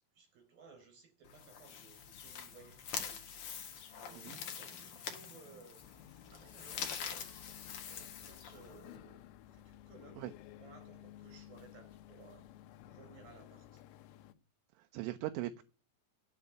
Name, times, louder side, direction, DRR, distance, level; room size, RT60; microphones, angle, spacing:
voice 1, 0.1-3.2 4.0-5.8 6.2-7.5 7.9-9.2 9.5-10.3 10.6-12.4 12.8-13.8, right 5 dB, 45° right, 5.9 m, -59 dB
sound 1, 1.2-9.0, left 8 dB, 65° left, 2.0 m, -45 dB
sound 2, 5.8-14.3, left 12 dB, 90° left, 3.7 m, -55 dB
voice 2, 14.8-15.6, right 15 dB, 80° right, 3.0 m, -40 dB
9.4 x 8.2 x 9.6 m
omnidirectional pair, 6.0 m